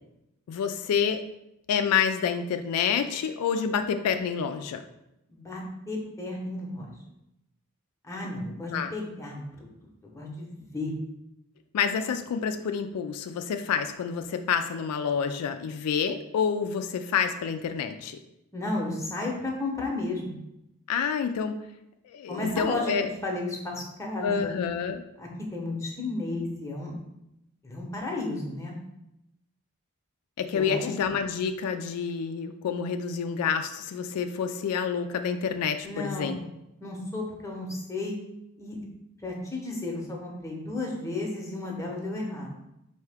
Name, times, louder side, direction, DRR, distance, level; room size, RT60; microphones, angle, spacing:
voice 1, 0.5-1.2 1.7-4.8 8.7-8.9 11.7-18.2 20.9-21.6 22.1-23.1 24.2-25.0 30.4-36.4, left 7 dB, 85° left, 9 dB, 0.3 m, -28 dB
voice 2, 5.3-6.9 8.0-9.7 10.0-10.9 18.5-20.4 22.3-24.6 25.2-27.0 27.6-28.8 30.5-30.9 35.8-36.4 36.8-38.1 38.6-38.8 39.2-42.5, left 2 dB, 15° left, -2 dB, 0.8 m, -33 dB
4.5 x 2.7 x 3.4 m, 0.87 s
head